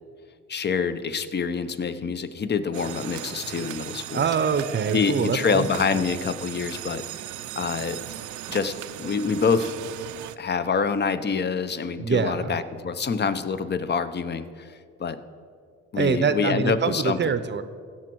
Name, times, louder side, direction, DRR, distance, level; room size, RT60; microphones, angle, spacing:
voice 1, 0.5-4.2 4.9-7.0 7.5-8.0 8.5-9.7 10.4-15.2 15.9-17.4, left 5 dB, 35° left, 12 dB, 0.6 m, -26 dB
sound 1, 2.7-10.4, right 13 dB, 80° right, 0.5 m, -37 dB
voice 2, 4.1-6.0 12.0-12.6 16.0-17.6, right 6 dB, 35° right, 12 dB, 0.6 m, -25 dB
16.0 x 6.1 x 4.6 m, 2.1 s
cardioid pair, 90°, 30 cm